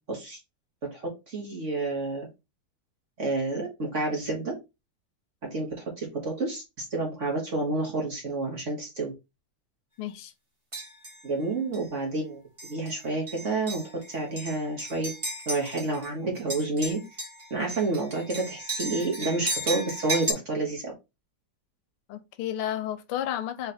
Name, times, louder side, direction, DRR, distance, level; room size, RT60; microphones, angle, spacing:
voice 1, 0.1-0.4 0.9-2.3 3.2-4.5 5.4-9.1 11.2-15.1 15.4-20.9, right 2 dB, 40° right, 1.5 m, -30 dB
voice 2, 10.0-10.3 22.1-23.7, left 11 dB, 85° left, 1.6 m, -32 dB
sound 1, 10.7-11.2 11.7-11.9 12.6-12.9 13.3-16.1 16.4-20.3, right 1 dB, 20° right, 1.1 m, -35 dB
4.0 x 3.2 x 4.2 m
omnidirectional pair, 2.3 m